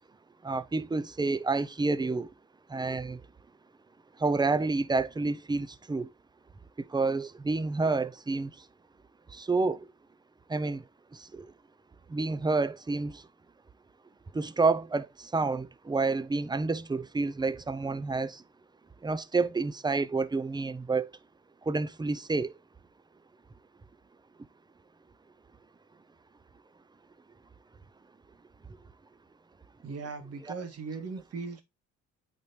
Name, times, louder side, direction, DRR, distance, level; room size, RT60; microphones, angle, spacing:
voice 1, 0.4-2.3 2.7-3.2 4.2-6.1 6.9-8.5 9.4-9.8 10.5-10.8 11.4-11.5 12.1-13.2 14.3-15.1 15.3-18.4 19.0-21.1 21.7-22.5 30.4-30.5, right 3 dB, 15° right, 0.5 m, -29 dB
voice 2, 29.8-31.6, right 4 dB, 55° right, 1.9 m, -38 dB
8.5 x 4.3 x 3.2 m
cardioid pair, 90°, 30 cm